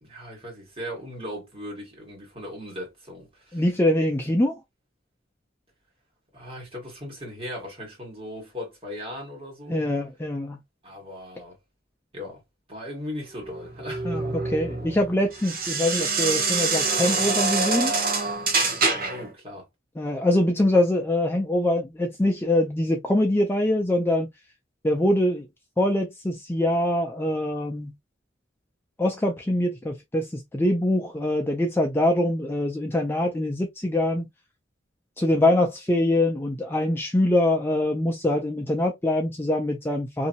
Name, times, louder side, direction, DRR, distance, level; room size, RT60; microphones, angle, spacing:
voice 1, 0.0-3.6 6.3-9.9 10.8-11.6 12.1-12.4 12.7-14.4 18.9-19.7, left 1 dB, 30° right, 1.7 m, -38 dB
voice 2, 3.5-4.6 9.7-10.6 14.0-17.9 20.0-24.3 24.8-25.5 25.8-27.9 29.0-34.3 35.2-40.3, left 1 dB, 10° left, 0.4 m, -24 dB
sound 1, 13.4-19.3, right 4 dB, 50° right, 1.0 m, -26 dB
2.8 x 2.7 x 2.6 m
head